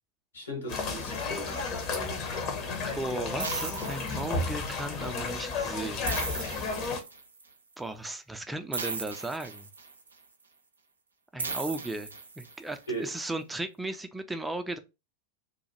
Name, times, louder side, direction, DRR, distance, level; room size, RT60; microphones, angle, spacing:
voice 1, 0.3-2.2 12.9-13.1, right 1 dB, 75° left, 1.4 m, -38 dB
sound 1, 0.7-7.0, left 4 dB, 35° left, 0.8 m, -33 dB
voice 2, 2.9-6.7 7.8-9.7 11.3-12.1 12.4-14.8, right 2 dB, 5° right, 0.5 m, -36 dB
sound 2, 3.4-4.7 6.1-7.4 8.7-10.1 11.4-12.7, right 4 dB, 75° right, 0.5 m, -37 dB
2.9 x 2.3 x 4.2 m
figure-of-eight pair, 90°, 0 cm